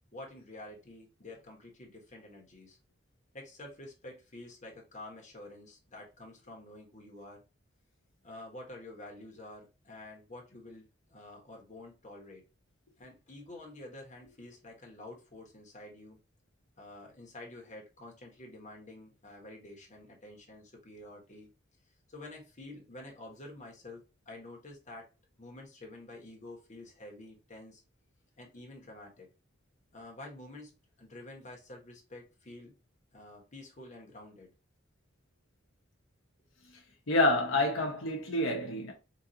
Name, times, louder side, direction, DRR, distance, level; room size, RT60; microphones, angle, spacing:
voice 1, 0.1-2.8 3.3-7.4 8.2-12.4 13.0-16.2 16.7-21.5 22.1-25.1 25.4-27.8 28.4-29.3 29.9-32.8 33.1-34.5, left 2 dB, 40° left, 1.2 m, -49 dB
voice 2, 37.1-38.9, left 2 dB, 90° left, 0.9 m, -28 dB
3.9 x 2.6 x 2.7 m
head